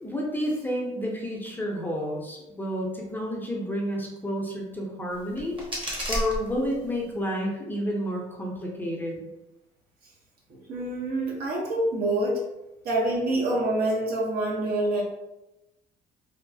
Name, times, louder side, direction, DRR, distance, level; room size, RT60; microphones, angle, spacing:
voice 1, 0.0-5.6 6.1-9.2, equal, 10° left, -2 dB, 0.5 m, -30 dB
sound 1, 5.1-7.1, equal, 30° right, 0.9 m, -33 dB
voice 2, 10.5-12.4 12.8-15.0, right 1 dB, 65° right, -3 dB, 0.9 m, -26 dB
3.0 x 2.0 x 2.6 m, 0.95 s
cardioid pair, 110°, 17 cm